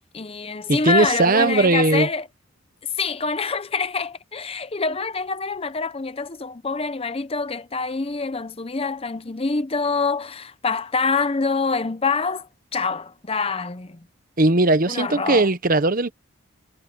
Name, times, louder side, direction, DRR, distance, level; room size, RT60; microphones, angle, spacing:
voice 1, 0.1-2.3 3.0-14.0 14.9-15.5, left 4 dB, 25° left, 0.7 m, -26 dB
voice 2, 0.7-2.1 14.4-16.1, right 2 dB, 40° right, 0.9 m, -18 dB
head